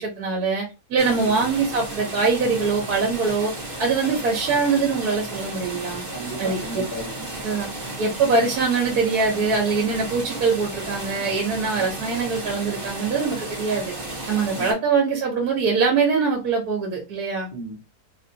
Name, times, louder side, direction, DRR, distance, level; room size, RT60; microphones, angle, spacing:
voice 1, 0.0-3.5 3.8-6.0 6.4-6.8 7.4-7.7 8.0-13.9 14.3-17.5, right 4 dB, 70° right, 0 dB, 1.3 m, -23 dB
voice 2, 1.0-1.3 6.1-7.2 10.1-10.3 11.7-11.9 14.5-14.8 17.5-18.0, right 2 dB, 35° left, -6 dB, 1.1 m, -34 dB
sound 1, 1.0-14.7, right 2 dB, 20° right, 1.3 m, -34 dB
3.4 x 2.6 x 2.7 m, 0.28 s
omnidirectional pair, 1.7 m